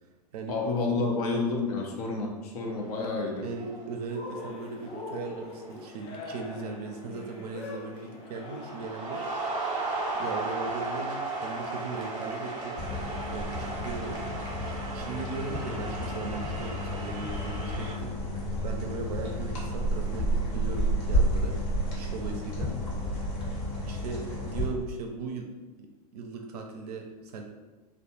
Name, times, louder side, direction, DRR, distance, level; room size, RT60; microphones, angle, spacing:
voice 1, 0.5-3.4, left 3 dB, 70° left, 0 dB, 0.6 m, -29 dB
sound 1, 2.7-3.2 3.4-4.0 4.8-5.1 5.5-7.7 8.0-17.9, right 3 dB, 20° right, 0.7 m, -36 dB
voice 2, 3.4-9.2 10.2-12.8 13.3-14.2 14.9-18.1 18.6-21.6 22.0-22.7 23.5-25.5 26.1-27.4, right 4 dB, 70° right, 2 dB, 0.4 m, -38 dB
Cheering, 4.1-9.0, left 3 dB, 30° left, 0.3 m, -42 dB
sound 2, 12.8-24.7, equal, 55° left, 1.0 m, -31 dB
2.3 x 2.0 x 2.9 m, 1.2 s
hypercardioid pair, 100°, 20 cm